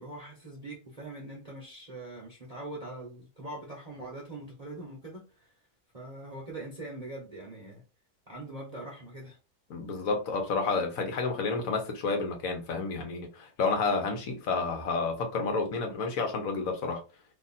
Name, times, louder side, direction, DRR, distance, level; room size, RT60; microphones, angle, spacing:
voice 1, 0.0-5.5 5.9-7.8 8.3-9.4, right 2 dB, 30° right, 0.8 m, -42 dB
voice 2, 9.7-17.0, left 4 dB, 70° left, 1.2 m, -30 dB
2.9 x 2.5 x 4.0 m
omnidirectional pair, 1.5 m